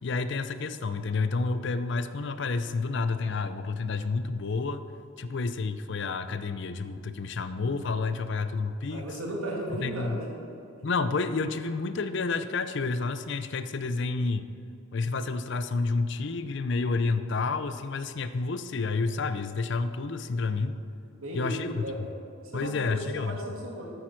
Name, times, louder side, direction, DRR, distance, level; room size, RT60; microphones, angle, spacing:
voice 1, 0.0-4.8 5.2-9.1 9.8-10.2 10.8-14.5 14.9-20.8 21.3-22.1 22.5-23.4, left 4 dB, 55° left, 11 dB, 0.5 m, -30 dB
voice 2, 8.9-10.3 10.8-10.9 21.1-22.1 22.4-23.9, right 1 dB, 75° right, -2 dB, 2.4 m, -35 dB
9.5 x 8.8 x 6.1 m, 2.6 s
head